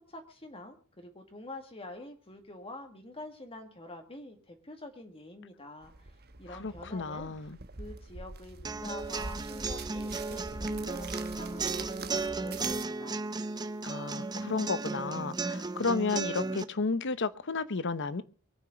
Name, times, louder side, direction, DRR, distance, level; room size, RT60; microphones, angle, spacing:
voice 1, 0.1-7.4 7.8-13.2, left 1 dB, 25° left, 5 dB, 1.9 m, -46 dB
sound 1, 5.8-12.8, right 4 dB, 45° right, 1.1 m, -44 dB
voice 2, 6.6-7.6 13.8-18.2, left 4 dB, 55° left, 15 dB, 0.8 m, -32 dB
sound 2, 8.6-16.6, right 3 dB, 20° right, 0.7 m, -35 dB
23.5 x 9.0 x 5.0 m, 0.38 s
head